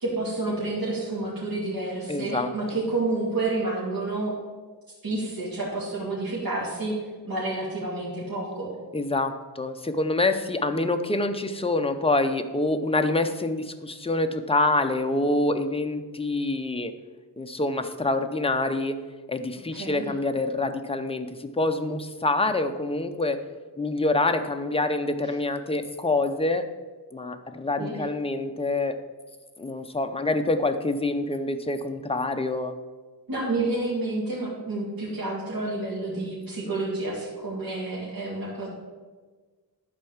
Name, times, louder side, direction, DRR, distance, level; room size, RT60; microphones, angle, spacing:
voice 1, 0.0-4.3 5.0-6.9 7.2-8.7 19.7-20.0 27.8-28.0 33.3-38.7, right 2 dB, 60° right, -7 dB, 2.8 m, -29 dB
voice 2, 2.1-2.5 8.9-16.9 17.4-19.0 19.3-23.4 23.8-26.7 27.1-29.0 29.6-32.8, left 2 dB, 15° left, 6 dB, 0.6 m, -26 dB
11.0 x 4.6 x 7.1 m, 1.4 s
wide cardioid pair, 150°, 40 cm